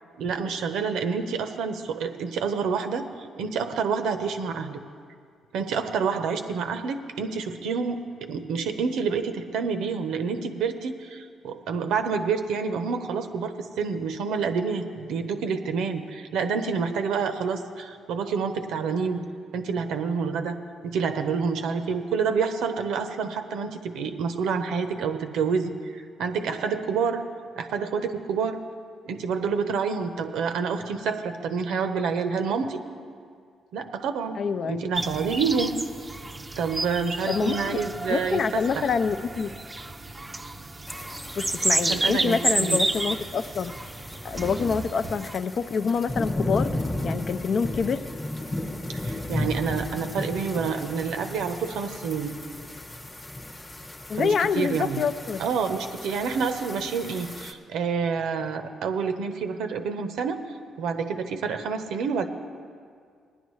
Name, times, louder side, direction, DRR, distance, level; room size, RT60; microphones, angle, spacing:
voice 1, 0.2-4.8 5.5-19.2 19.5-27.2 27.6-28.6 29.1-32.8 33.7-35.8 36.6-38.9 41.8-42.8 49.0-52.4 54.1-55.0 55.4-60.4 60.8-62.3, right 5 dB, 85° right, 7 dB, 0.7 m, -28 dB
voice 2, 34.4-34.9 37.3-37.8 38.1-39.5 41.4-43.7 44.2-48.0 54.1-55.4, left 5 dB, 55° left, 11 dB, 0.5 m, -26 dB
sound 1, 35.0-45.3, right 2 dB, 20° right, 0.5 m, -30 dB
sound 2, 40.9-57.5, left 1 dB, 20° left, 1.1 m, -35 dB
19.0 x 10.5 x 3.2 m, 2.1 s
cardioid pair, 90°, 0 cm